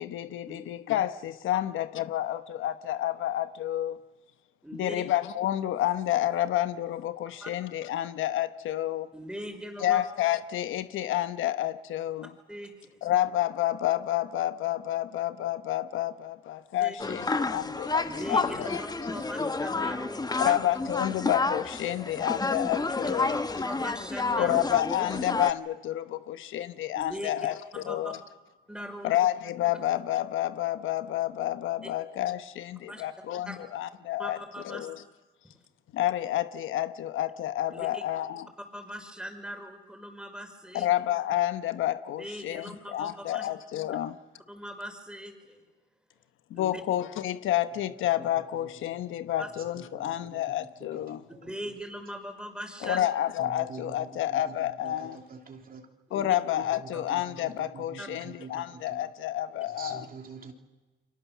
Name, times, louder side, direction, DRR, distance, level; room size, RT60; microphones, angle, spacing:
voice 1, 0.0-4.0 4.8-9.1 9.8-12.3 13.0-18.0 18.3-18.8 19.1-19.2 20.4-23.4 24.4-28.2 29.0-34.4 34.6-35.0 35.9-38.5 40.7-44.2 46.5-51.2 52.8-55.2 56.1-60.0, left 13 dB, 80° left, 12 dB, 1.1 m, -29 dB
voice 2, 4.6-5.0 7.4-7.5 9.1-10.0 12.5-12.9 16.8-17.0 18.0-20.6 22.6-22.7 23.0-24.6 26.9-27.3 27.7-28.1 28.7-29.1 32.9-33.0 33.4-33.6 34.2-34.9 37.7-38.0 38.7-40.9 42.2-43.5 44.5-45.6 46.5-46.8 49.4-49.5 51.3-53.0 56.1-56.4 58.0-58.1, equal, 5° right, 5 dB, 5.2 m, -40 dB
sound 1, 17.0-25.5, left 3 dB, 20° left, 1.2 m, -30 dB
voice 3, 48.2-49.0 49.6-51.7 53.4-55.9 56.7-59.0 59.7-60.5, right 5 dB, 45° right, 4 dB, 3.1 m, -47 dB
29.5 x 24.0 x 7.3 m, 1.2 s
cardioid pair, 90°, 20 cm